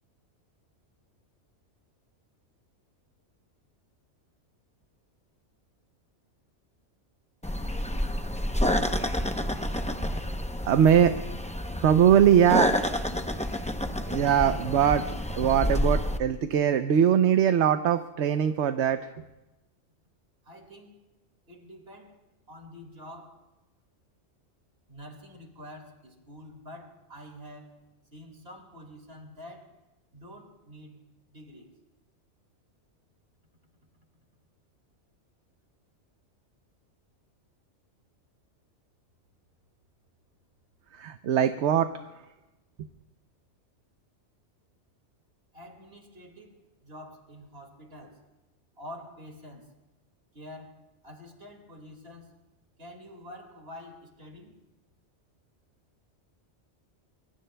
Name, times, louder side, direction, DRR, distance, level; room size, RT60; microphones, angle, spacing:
sound 1, 7.4-16.2, left 1 dB, 10° left, 0.5 m, -29 dB
voice 1, 10.6-11.1 11.8-12.9 14.1-15.1 15.4-19.1 40.9-41.9, right 9 dB, 75° right, 8 dB, 1.0 m, -22 dB
voice 2, 20.4-21.0 21.5-22.2 22.5-23.4 24.9-27.7 28.1-29.7 30.1-31.0 31.3-31.7 45.5-48.2 48.8-49.7 50.3-52.3 52.8-54.6, left 1 dB, 60° right, 2 dB, 2.5 m, -47 dB
25.0 x 24.5 x 2.3 m, 1.0 s
omnidirectional pair, 1.2 m